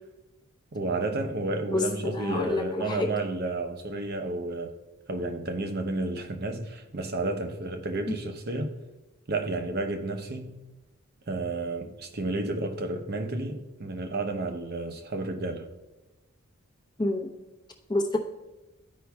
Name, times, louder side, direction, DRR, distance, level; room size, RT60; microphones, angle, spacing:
voice 1, 0.7-4.7 5.1-8.7 9.3-10.6 11.3-15.7, right 2 dB, 50° right, 0.8 m, -31 dB
voice 2, 1.7-3.1 8.1-8.2 17.0-17.3 17.9-18.2, left 2 dB, 20° left, 0.8 m, -28 dB
13.0 x 5.3 x 2.3 m
head